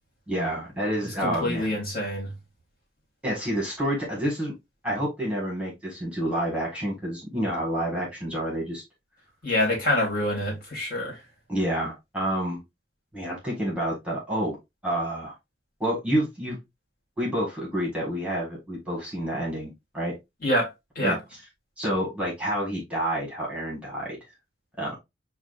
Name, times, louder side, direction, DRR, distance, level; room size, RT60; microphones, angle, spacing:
voice 1, 0.3-1.8 3.2-4.5 4.8-8.8 11.5-12.6 13.1-14.6 14.8-15.3 15.8-16.6 17.2-20.1 21.0-21.2 21.8-24.2 24.8-25.0, equal, 5° right, 1.6 m, -28 dB
voice 2, 1.0-2.3 9.4-11.2 20.4-21.2, left 1 dB, 50° left, 2.0 m, -26 dB
7.3 x 2.4 x 2.4 m
head